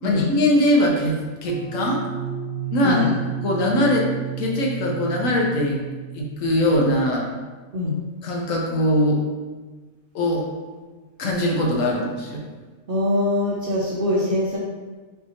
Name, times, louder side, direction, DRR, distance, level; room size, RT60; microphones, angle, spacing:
voice 1, 0.0-2.0 2.7-3.1 3.4-4.1 4.4-5.8 6.1-7.2 8.2-9.2 10.1-10.4 11.2-12.4, left 1 dB, 65° left, -1 dB, 1.1 m, -21 dB
sound 1, 1.5-6.7, right 9 dB, 85° right, 1.4 m, -32 dB
voice 2, 12.9-14.6, left 1 dB, 60° right, -6 dB, 0.6 m, -23 dB
5.4 x 2.8 x 2.8 m, 1.3 s
omnidirectional pair, 1.6 m